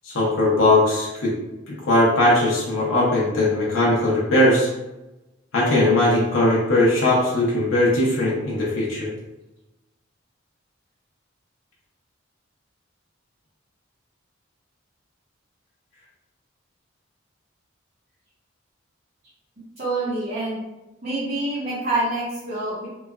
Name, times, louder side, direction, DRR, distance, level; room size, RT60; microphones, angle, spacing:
voice 1, 0.0-1.3 1.7-4.7 5.5-9.1, left 1 dB, 75° left, -5 dB, 0.7 m, -19 dB
voice 2, 19.8-20.6 21.0-22.9, right 2 dB, 45° right, -10 dB, 0.8 m, -26 dB
3.1 x 2.2 x 2.3 m, 1.0 s
head